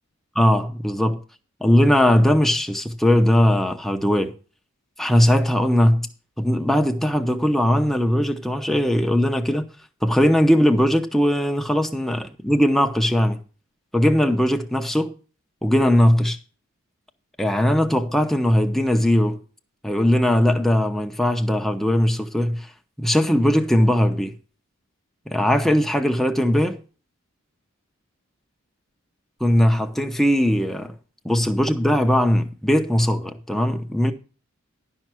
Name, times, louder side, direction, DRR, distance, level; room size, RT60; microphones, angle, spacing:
voice 1, 0.4-1.2 1.6-4.3 5.0-6.1 6.4-9.7 10.0-13.4 13.9-15.1 15.6-16.4 17.4-19.4 19.8-22.7 23.0-24.3 25.3-26.8 29.4-30.9 31.2-34.1, equal, ahead, 0.7 m, -19 dB
11.5 x 5.6 x 6.1 m
head